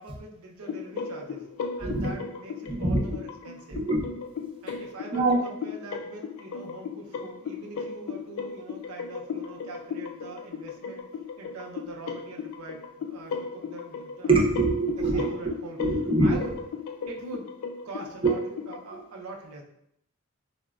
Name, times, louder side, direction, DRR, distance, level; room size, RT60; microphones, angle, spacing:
voice 1, 0.0-1.4 1.8-3.8 4.6-11.0 11.4-14.4 15.0-15.8 16.2-16.5 17.1-17.5 17.9-18.4 18.7-19.6, right 2 dB, 90° right, 0 dB, 0.5 m, -43 dB
sound 1, 0.6-18.8, left 5 dB, 75° left, 0.3 m, -36 dB
voice 2, 1.8-2.2 2.7-3.1 3.7-4.0 5.1-5.4 14.3-15.3 15.8-16.4 18.2-18.3 18.9-19.0, right 2 dB, 25° right, -1 dB, 0.5 m, -24 dB
3.9 x 2.0 x 2.3 m, 0.74 s
head